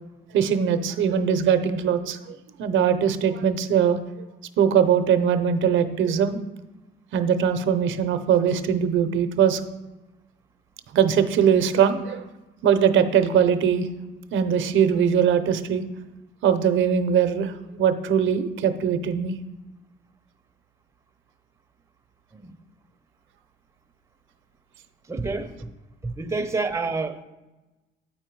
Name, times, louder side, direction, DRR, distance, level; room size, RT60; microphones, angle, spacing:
voice 1, 0.3-4.0 4.6-6.4 7.1-9.6 10.9-12.2 12.6-13.9 14.3-15.8 16.4-19.3, right 8 dB, 75° right, 0.6 m, -21 dB
voice 2, 25.1-25.5 26.0-27.2, right 3 dB, 15° right, 0.6 m, -28 dB
9.1 x 4.4 x 4.6 m
cardioid pair, 90°, 20 cm